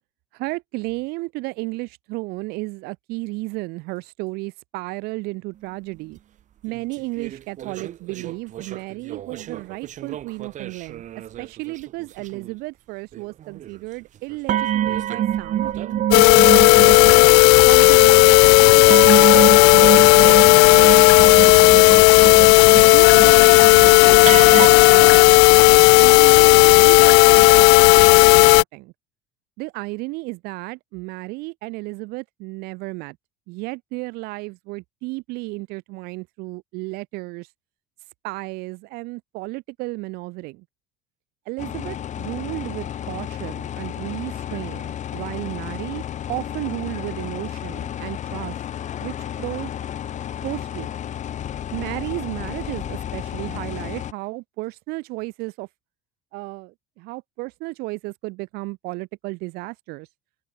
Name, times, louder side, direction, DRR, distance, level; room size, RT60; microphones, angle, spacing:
voice 1, 0.3-6.2 6.6-11.0 11.4-16.9 17.6-21.9 22.9-28.9 29.6-33.2 33.5-37.5 38.2-40.6 41.5-48.6 49.0-49.1 49.4-49.7 50.4-50.9 51.7-55.7 56.3-60.1, right 24 dB, 70° right, 0.7 m, -33 dB
sound 1, 6.7-11.9 12.2-12.5 13.1-13.8 14.5-18.0 18.9-24.7, right 11 dB, 45° right, 1.2 m, -26 dB
sound 2, 16.1-28.6, left 36 dB, 70° left, 0.4 m, -12 dB
sound 3, 41.6-54.1, left 10 dB, 45° left, 1.7 m, -32 dB
supercardioid pair, 85°, 17 cm